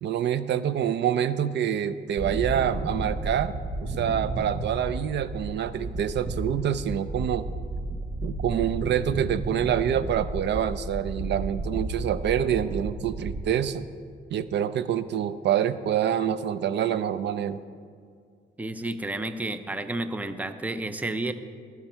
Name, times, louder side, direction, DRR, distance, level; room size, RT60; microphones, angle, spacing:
voice 1, 0.0-3.5 3.8-7.5 8.2-13.9 14.3-17.6, right 9 dB, 60° right, 14 dB, 0.5 m, -26 dB
sound 1, 2.2-13.4, right 2 dB, 30° right, 1.0 m, -33 dB
voice 2, 18.6-21.3, right 2 dB, 5° right, 10 dB, 0.5 m, -31 dB
17.5 x 6.0 x 4.5 m, 2.1 s
cardioid pair, 90°, 20 cm